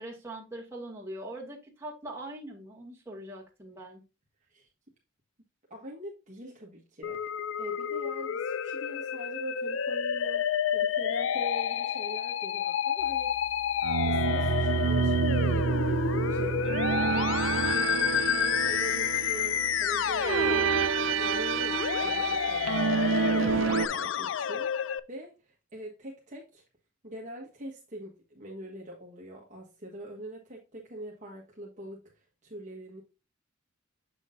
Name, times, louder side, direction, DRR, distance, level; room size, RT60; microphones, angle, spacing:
voice 1, 0.0-4.0, right 1 dB, 15° right, 2.4 m, -42 dB
voice 2, 5.7-7.3 7.6-13.3 14.0-16.0 16.3-20.7 21.2-26.6 27.0-33.0, right 1 dB, 40° right, 1.4 m, -43 dB
Musical instrument, 7.0-25.0, left 8 dB, 70° left, 0.4 m, -30 dB
sound 1, 13.8-23.9, right 6 dB, 70° right, 0.4 m, -28 dB
7.6 x 6.3 x 2.6 m
head